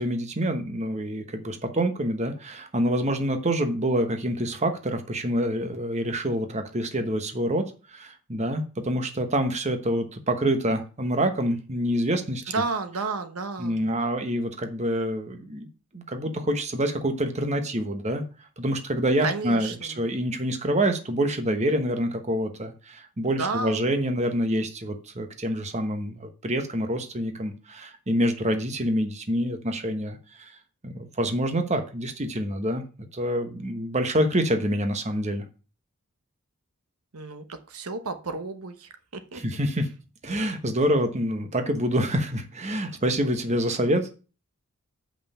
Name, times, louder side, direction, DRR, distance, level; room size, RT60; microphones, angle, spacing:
voice 1, 0.0-12.4 13.6-15.7 15.9-18.2 18.6-30.5 30.8-35.4 39.3-39.9 40.2-44.1, equal, 30° right, 7 dB, 1.1 m, -26 dB
voice 2, 12.5-13.9 19.2-20.1 23.2-23.9 37.1-39.4 42.9-43.0, right 4 dB, 75° right, 8 dB, 1.0 m, -32 dB
7.8 x 5.6 x 5.6 m, 0.34 s
head